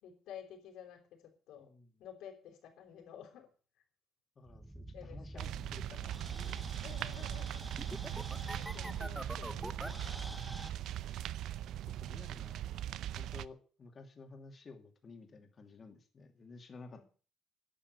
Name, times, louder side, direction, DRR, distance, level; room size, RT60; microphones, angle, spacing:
voice 1, 0.0-1.7 2.0-3.5 4.9-5.4 6.8-7.6 8.5-11.1 16.9-17.0, left 9 dB, 80° left, -2 dB, 5.0 m, -53 dB
voice 2, 1.5-1.9 4.4-6.7 11.6-12.6 13.1-17.0, left 3 dB, 30° left, 5 dB, 2.6 m, -54 dB
sound 1, 4.5-10.7, right 1 dB, 5° right, 0.9 m, -45 dB
sound 2, 5.4-13.4, right 12 dB, 65° right, 0.6 m, -40 dB
11.5 x 10.5 x 8.2 m, 0.39 s
cardioid pair, 175°, 0 cm